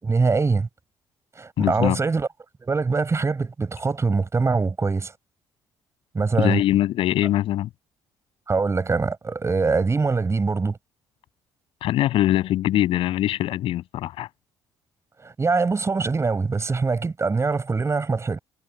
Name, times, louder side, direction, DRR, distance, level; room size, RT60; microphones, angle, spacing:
voice 1, 0.0-0.7 1.4-2.3 2.6-5.1 6.1-6.6 8.5-10.8 15.2-18.4, right 4 dB, 30° right, 6.9 m, -23 dB
voice 2, 1.6-2.0 6.4-7.7 11.8-14.3, left 13 dB, 70° left, 7.9 m, -22 dB
supercardioid pair, 70°, 10 cm